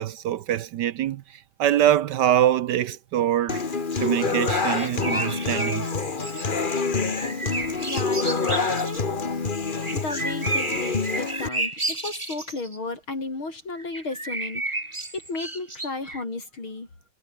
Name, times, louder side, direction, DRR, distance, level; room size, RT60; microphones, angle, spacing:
voice 1, 0.0-3.6 4.0-5.9, right 11 dB, 70° right, 1.2 m, -24 dB
Human voice / Acoustic guitar, 3.5-11.5, left 4 dB, 25° left, 1.5 m, -27 dB
sound 1, 4.5-6.5 7.1-9.0 9.8-12.8 13.8-16.2, right 2 dB, 15° right, 1.8 m, -32 dB
voice 2, 7.8-9.2 9.9-14.6 15.1-16.9, left 3 dB, 85° left, 7.0 m, -33 dB
omnidirectional pair, 2.2 m